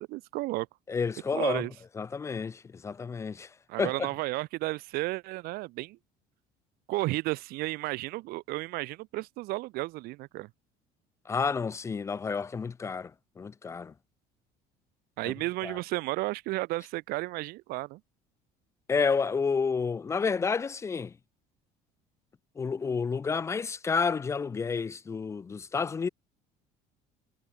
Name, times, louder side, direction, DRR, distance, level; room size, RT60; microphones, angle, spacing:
voice 1, 0.1-0.7 1.3-1.7 3.7-6.0 6.9-10.5 15.2-18.0, right 20 dB, 70° right, 2.1 m, -33 dB
voice 2, 0.9-1.6 2.0-3.5 3.8-4.1 11.3-13.1 13.4-13.9 15.2-15.3 15.6-15.8 18.9-21.1 22.6-26.1, left 5 dB, 20° left, 0.4 m, -30 dB
cardioid pair, 125°, 16 cm